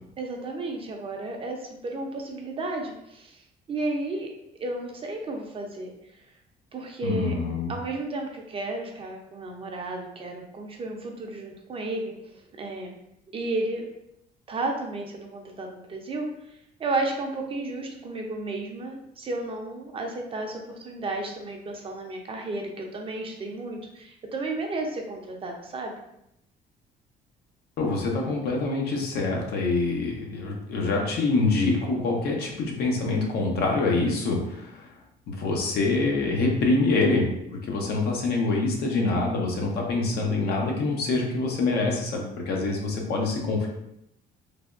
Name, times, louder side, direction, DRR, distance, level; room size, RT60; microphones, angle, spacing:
voice 1, 0.2-3.4 3.7-4.3 4.6-5.9 6.7-7.3 7.7-12.9 13.3-13.8 14.5-26.0, right 2 dB, 35° right, 2 dB, 0.5 m, -33 dB
voice 2, 7.0-7.7 27.8-34.9 35.3-43.7, left 3 dB, 70° left, 0 dB, 0.7 m, -25 dB
3.3 x 2.2 x 2.4 m, 0.81 s
cardioid pair, 110°, 17 cm